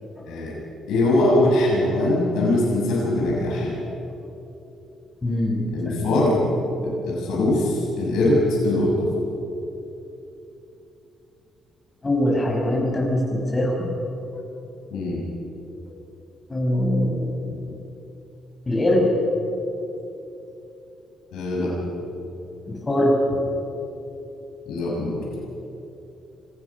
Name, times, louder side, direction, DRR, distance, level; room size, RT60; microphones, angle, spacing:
voice 1, 0.9-3.7 5.7-6.3 6.8-9.1 14.9-15.2 21.3-21.7 24.7-25.2, left 1 dB, 85° left, -4 dB, 6.9 m, -22 dB
voice 2, 5.2-6.2 12.0-13.9 16.5-17.3 18.7-19.1 22.7-23.1, left 1 dB, 25° left, 0 dB, 6.2 m, -22 dB
25.5 x 18.0 x 6.0 m, 3.0 s
cardioid pair, 90°, 0 cm